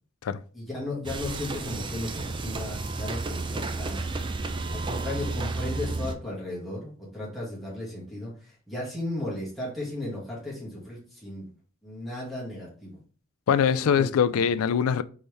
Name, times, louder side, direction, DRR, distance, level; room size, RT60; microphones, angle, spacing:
voice 1, 0.5-4.0 4.7-11.5 11.8-13.0 13.7-14.1, left 1 dB, ahead, 1.9 m, -35 dB
sound 1, 1.0-6.1, right 3 dB, 20° right, 0.4 m, -32 dB
voice 2, 13.5-15.0, left 7 dB, 75° left, 0.3 m, -23 dB
4.1 x 3.5 x 3.3 m
head